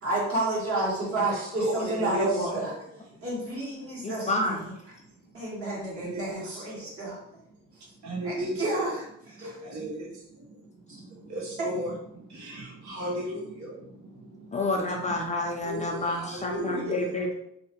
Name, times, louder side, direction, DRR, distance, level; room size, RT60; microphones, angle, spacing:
voice 1, 0.0-2.7 3.2-4.6 5.3-7.2 8.2-9.6 11.6-11.7, right 2 dB, 50° right, -6 dB, 1.4 m, -30 dB
voice 2, 1.2-2.7 3.8-4.0 5.9-6.9 8.0-8.9 9.6-15.2 15.6-17.0, equal, 70° right, -3 dB, 0.9 m, -35 dB
voice 3, 4.0-4.6 14.5-17.3, left 2 dB, 25° left, 1 dB, 0.4 m, -29 dB
2.6 x 2.1 x 2.8 m, 0.76 s
cardioid pair, 90°, 30 cm